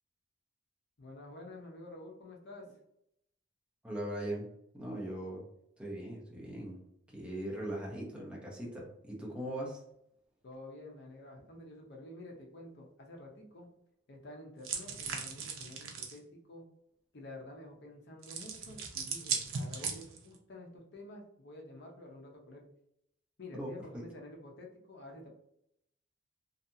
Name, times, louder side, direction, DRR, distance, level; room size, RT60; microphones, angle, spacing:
voice 1, 1.0-2.8 10.4-13.7 14.1-16.7 17.1-22.6 23.4-25.3, left 1 dB, 55° left, 1 dB, 0.6 m, -50 dB
voice 2, 3.8-4.5 4.7-5.4 5.8-6.8 7.1-9.8 23.5-24.0, right 1 dB, 5° right, -3 dB, 0.6 m, -40 dB
sound 1, 14.6-16.2 18.2-20.3, right 5 dB, 75° right, 0.5 m, -38 dB
2.7 x 2.3 x 2.6 m, 0.75 s
head